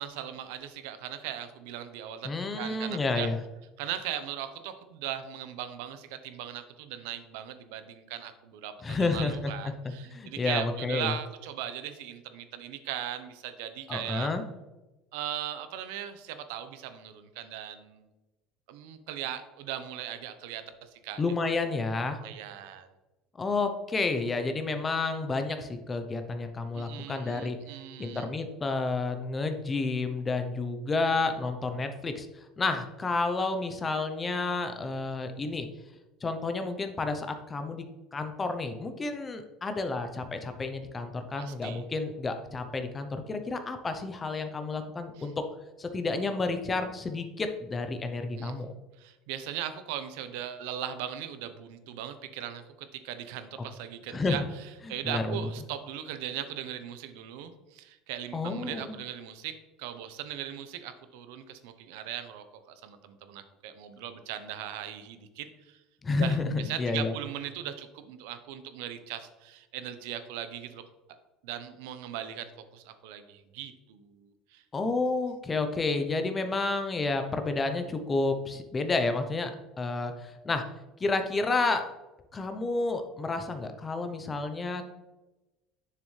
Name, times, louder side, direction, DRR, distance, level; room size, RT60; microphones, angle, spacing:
voice 1, 0.0-3.3 3.8-14.3 15.1-18.1 18.7-21.2 22.2-22.9 26.7-28.3 41.4-41.8 45.2-45.3 48.4-48.6 49.0-59.5 59.8-65.8 66.2-70.8 71.1-71.2 71.4-74.6, right 10 dB, 90° right, 10 dB, 0.8 m, -39 dB
voice 2, 2.2-3.4 8.8-9.5 10.0-11.1 13.9-14.4 21.2-22.2 23.4-27.6 28.0-32.3 32.6-35.7 36.2-37.9 38.1-45.3 45.8-48.7 54.1-54.4 55.0-55.5 58.3-59.0 66.0-67.1 74.7-79.5 79.8-80.6 81.0-81.9 82.3-84.8, left 3 dB, 15° left, 7 dB, 0.6 m, -30 dB
7.1 x 6.6 x 3.2 m, 1.1 s
cardioid pair, 180°, 0 cm